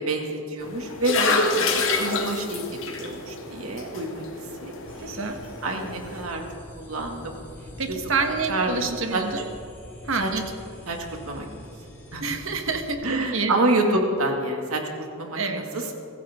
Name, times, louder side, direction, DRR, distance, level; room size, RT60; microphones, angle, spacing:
voice 1, 0.0-1.7 2.0-4.2 4.6-5.2 5.6-6.4 6.8-7.4 7.9-8.0 8.5-9.4 10.2-10.3 10.9-11.0 11.3-11.7 12.1-12.4 13.0-15.9, right 2 dB, 85° right, 2 dB, 2.3 m, -28 dB
sound 1, 0.6-6.2, left 3 dB, 65° left, 2.0 m, -28 dB
sound 2, 4.9-12.9, left 1 dB, 10° left, 2.2 m, -44 dB
voice 2, 5.0-5.4 7.8-9.4 10.1-10.4 12.2-13.0 13.3-13.5 15.4-15.6, right 4 dB, 70° right, 5 dB, 1.5 m, -27 dB
25.0 x 15.0 x 3.7 m, 2.7 s
head